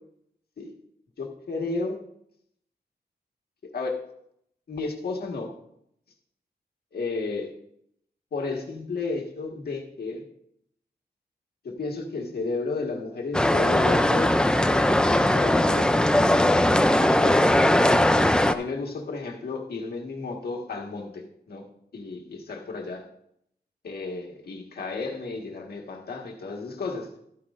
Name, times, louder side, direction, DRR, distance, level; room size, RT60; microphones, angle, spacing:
voice 1, 1.2-2.0 3.7-4.0 4.7-5.5 6.9-7.5 8.3-10.2 11.6-18.1 18.5-23.1 23.8-27.2, left 3 dB, 65° left, 1 dB, 1.6 m, -33 dB
sound 1, 13.3-18.5, left 1 dB, 5° left, 0.4 m, -20 dB
13.5 x 9.4 x 2.5 m, 0.74 s
wide cardioid pair, 170°, 17 cm